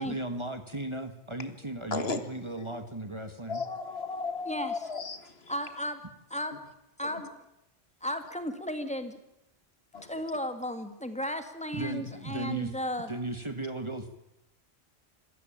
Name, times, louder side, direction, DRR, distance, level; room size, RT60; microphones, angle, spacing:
voice 1, 0.0-3.6 11.7-12.7 13.1-14.2, right 2 dB, 25° right, 9 dB, 1.6 m, -36 dB
voice 2, 1.9-2.2 3.5-5.5 7.0-7.1 9.9-10.1, left 4 dB, 65° left, 10 dB, 1.8 m, -34 dB
voice 3, 5.5-6.0 6.3-6.6 7.0-7.3 8.0-9.2 10.0-13.1, equal, 5° left, 8 dB, 2.1 m, -34 dB
26.5 x 15.0 x 8.7 m, 0.86 s
omnidirectional pair, 1.1 m